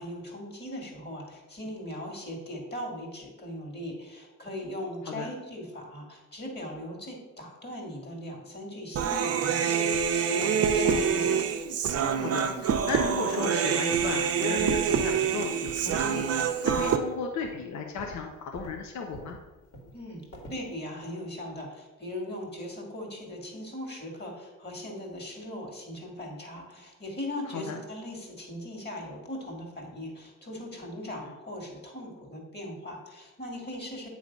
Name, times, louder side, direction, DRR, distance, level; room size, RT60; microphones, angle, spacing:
voice 1, 0.0-11.3 19.9-20.2 20.5-34.1, left 1 dB, 35° left, 1 dB, 2.1 m, -39 dB
Human voice, 8.9-17.0, right 7 dB, 55° right, 0.6 m, -26 dB
voice 2, 12.2-19.4 27.5-27.8 31.2-31.3, left 5 dB, 70° left, 2 dB, 0.8 m, -35 dB
sound 1, 14.0-15.4 15.6-15.9 16.2-17.1 17.4-17.6 18.0-20.7, right 1 dB, 50° left, 2.0 m, -45 dB
8.1 x 3.2 x 5.2 m, 1.1 s
cardioid pair, 90°, 30 cm